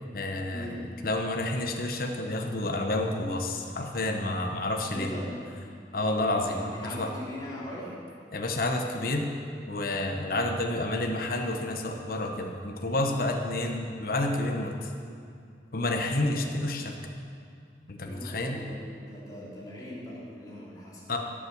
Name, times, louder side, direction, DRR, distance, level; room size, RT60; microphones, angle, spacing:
voice 1, 0.1-0.7 1.0-5.1 5.9-7.1 8.3-9.3 9.7-14.9 15.7-17.0 17.9-18.6 21.1-21.2, left 2 dB, 55° left, 2 dB, 1.1 m, -29 dB
voice 2, 4.9-5.3 6.5-8.0 16.3-16.5 18.1-21.0, equal, 20° left, -7 dB, 3.5 m, -40 dB
15.5 x 7.3 x 7.1 m, 2.4 s
head